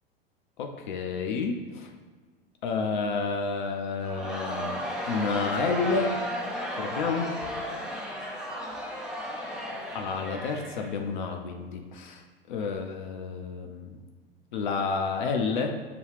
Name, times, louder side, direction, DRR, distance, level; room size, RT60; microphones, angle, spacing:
voice 1, 0.6-1.9 2.6-6.1 6.8-7.3 9.9-12.2 12.5-14.0 14.5-15.7, left 4 dB, 55° left, 3 dB, 0.5 m, -30 dB
Crowd, 4.0-11.3, equal, ahead, 0.3 m, -34 dB
6.6 x 2.3 x 3.2 m, 1.4 s
figure-of-eight pair, 90°, 30 cm